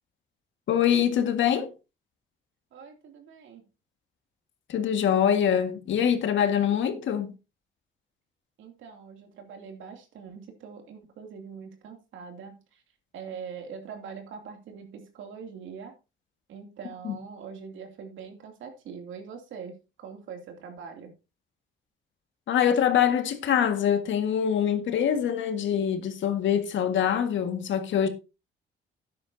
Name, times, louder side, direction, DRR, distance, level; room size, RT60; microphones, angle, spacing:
voice 1, 0.7-1.7 4.7-7.3 17.0-17.2 22.5-28.1, left 9 dB, 70° left, 1.8 m, -24 dB
voice 2, 2.7-3.6 8.6-12.8 13.1-15.9 16.5-21.1, right 6 dB, 80° right, 2.7 m, -43 dB
12.5 x 9.5 x 2.7 m
cardioid pair, 90°, 20 cm